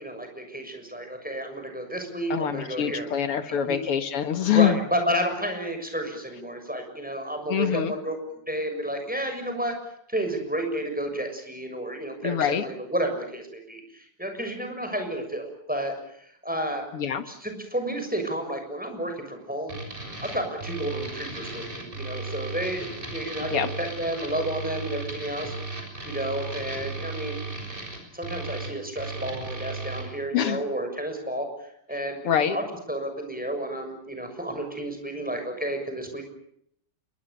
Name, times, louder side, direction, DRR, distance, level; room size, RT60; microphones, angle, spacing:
voice 1, 0.0-3.1 3.4-3.8 4.5-9.8 10.1-16.8 17.2-19.8 20.2-25.8 26.0-27.4 28.1-36.2, right 1 dB, 5° right, 5 dB, 6.6 m, -31 dB
voice 2, 2.3-4.8 7.5-7.9 12.2-12.6 16.9-17.2 23.5-23.7 30.3-30.6 32.2-32.6, left 9 dB, 90° left, 9 dB, 2.7 m, -24 dB
sound 1, 19.7-30.0, right 3 dB, 20° right, 7.1 m, -35 dB
28.0 x 23.5 x 6.9 m, 0.69 s
omnidirectional pair, 2.4 m